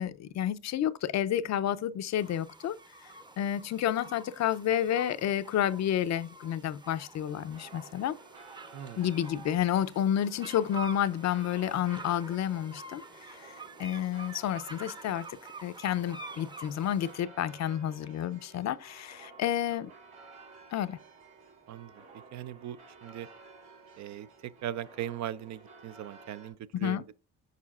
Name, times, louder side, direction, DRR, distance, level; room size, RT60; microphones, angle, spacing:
voice 1, 0.0-2.8 3.4-8.2 9.0-13.0 13.3-13.5 13.8-15.3 15.6-19.9 20.7-21.0 26.8-27.0, left 10 dB, 65° left, 0.6 m, -30 dB
sound 1, 2.2-17.1, right 3 dB, 15° right, 0.6 m, -48 dB
sound 2, 7.2-26.5, right 3 dB, 90° right, 3.1 m, -53 dB
voice 2, 8.7-9.1 21.7-22.0 22.3-23.3 24.0-27.2, right 11 dB, 65° right, 0.5 m, -39 dB
6.6 x 6.1 x 2.4 m
cardioid pair, 90°, 30 cm